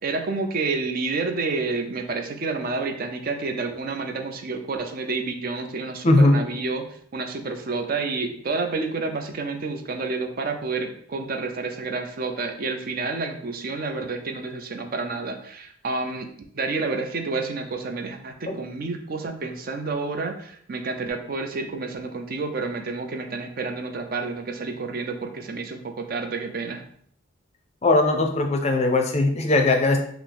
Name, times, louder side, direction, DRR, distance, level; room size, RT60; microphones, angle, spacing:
voice 1, 0.0-6.8 7.1-16.3 16.5-26.8, right 3 dB, 45° right, 5 dB, 0.5 m, -29 dB
voice 2, 6.0-6.4 18.5-18.6 27.8-30.0, left 2 dB, 35° left, 4 dB, 0.5 m, -19 dB
5.7 x 2.0 x 3.4 m, 0.63 s
head